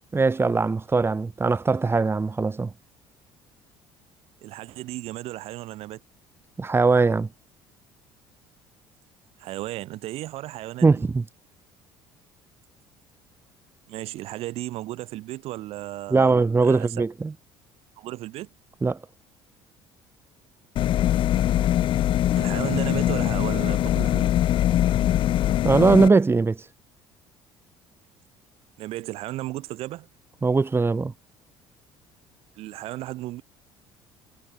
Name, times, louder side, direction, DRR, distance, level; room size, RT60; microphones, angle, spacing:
voice 1, 0.1-2.7 6.6-7.3 10.8-11.2 16.1-17.3 18.8-19.0 25.6-26.6 30.4-31.1, right 4 dB, 20° right, 3.9 m, -20 dB
voice 2, 4.4-6.0 9.4-11.0 13.9-17.0 18.0-18.5 22.4-24.3 28.8-30.1 32.6-33.4, right 16 dB, 70° right, 3.1 m, -34 dB
sound 1, 20.8-26.1, left 12 dB, 55° left, 0.5 m, -22 dB
supercardioid pair, 85°, 11 cm